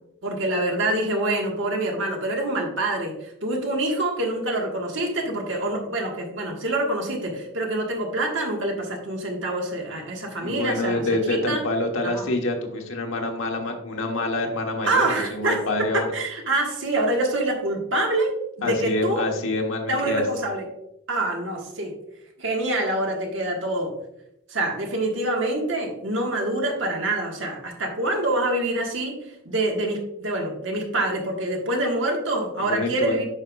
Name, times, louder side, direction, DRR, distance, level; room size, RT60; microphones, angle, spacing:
voice 1, 0.2-11.0 11.5-11.6 12.0-12.3 14.8-19.2 19.9-20.7 21.1-22.0 22.4-23.9 24.5-33.2, right 1 dB, 65° right, 1 dB, 1.5 m, -26 dB
voice 2, 10.4-15.0 15.3-16.1 18.6-20.2 32.6-33.2, left 2 dB, 80° left, 2 dB, 1.2 m, -26 dB
8.8 x 5.6 x 2.3 m, 0.82 s
head